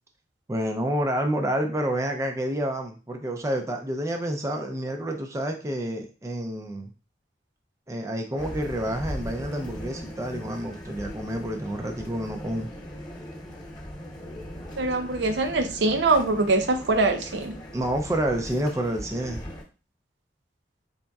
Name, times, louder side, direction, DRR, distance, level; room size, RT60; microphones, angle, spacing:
voice 1, 0.5-6.9 7.9-12.7 17.7-19.4, right 1 dB, 15° right, 3 dB, 0.4 m, -29 dB
sound 1, 8.4-19.6, equal, 20° left, 0.9 m, -39 dB
voice 2, 14.8-17.6, right 3 dB, 70° right, 6 dB, 0.6 m, -23 dB
4.0 x 3.5 x 2.3 m, 0.34 s
head